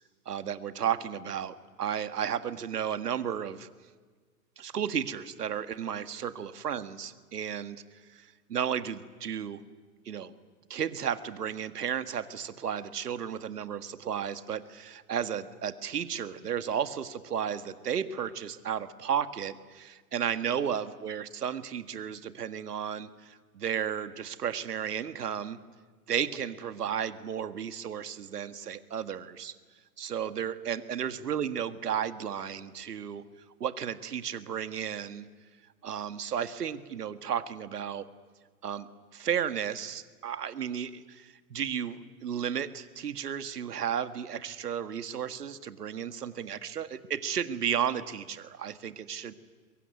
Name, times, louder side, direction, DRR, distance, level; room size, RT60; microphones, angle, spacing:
voice 1, 0.3-3.7 4.6-7.8 8.1-9.6 10.1-10.3 10.7-25.6 26.1-29.6 30.0-33.2 33.6-35.3 35.8-38.1 38.6-38.9 39.1-49.3, right 8 dB, 85° right, 12 dB, 1.8 m, -33 dB
23.0 x 22.5 x 9.5 m, 1.5 s
hypercardioid pair, 120°, 46 cm